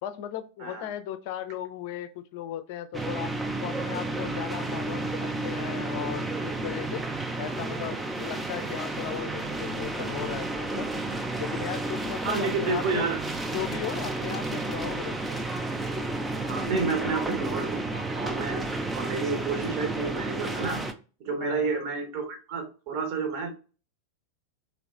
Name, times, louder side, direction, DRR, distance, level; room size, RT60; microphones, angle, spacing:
voice 1, 0.0-3.3 3.6-7.1 7.4-10.9 11.4-13.1 13.5-15.4 16.9-17.2 21.4-21.7, left 11 dB, 50° left, 10 dB, 0.4 m, -37 dB
sound 1, 2.9-20.9, right 2 dB, 10° right, 0.5 m, -31 dB
voice 2, 12.2-13.2 13.9-14.4 16.5-18.6 19.0-20.8 21.2-23.5, right 4 dB, 45° right, 5 dB, 1.0 m, -30 dB
3.3 x 2.9 x 2.5 m, 0.35 s
figure-of-eight pair, 90°, 0 cm